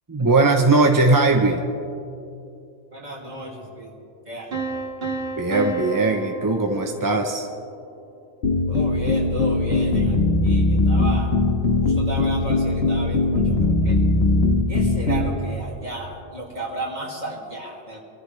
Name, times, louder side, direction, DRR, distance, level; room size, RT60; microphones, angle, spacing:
voice 1, 0.1-1.6 5.4-7.5, right 3 dB, 20° right, 3 dB, 0.7 m, -19 dB
voice 2, 2.9-3.9 4.3-4.5 8.7-11.3 11.8-14.0 14.7-18.0, right 1 dB, 40° right, -3 dB, 2.6 m, -34 dB
sound 1, 4.5-7.4, right 3 dB, 60° right, 2.3 m, -31 dB
sound 2, 8.4-15.3, left 2 dB, 60° left, 1.7 m, -20 dB
25.5 x 14.0 x 3.3 m, 2.7 s
omnidirectional pair, 1.2 m